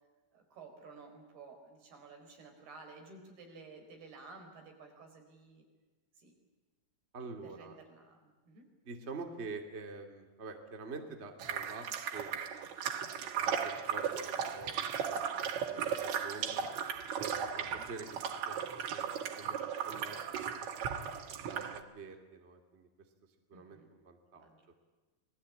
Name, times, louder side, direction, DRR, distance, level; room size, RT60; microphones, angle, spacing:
voice 1, 0.3-5.7 6.1-6.3 7.4-8.7 17.7-17.8 23.5-23.9 24.3-24.7, right 4 dB, 85° right, 4 dB, 6.4 m, -54 dB
voice 2, 7.1-7.8 8.9-12.7 13.1-16.7 17.2-20.9 21.4-22.9 23.5-24.5, right 4 dB, 20° right, 4 dB, 2.2 m, -47 dB
sound 1, 11.4-21.8, right 8 dB, 60° right, 2.2 m, -36 dB
28.0 x 20.0 x 8.6 m, 1.3 s
omnidirectional pair, 4.4 m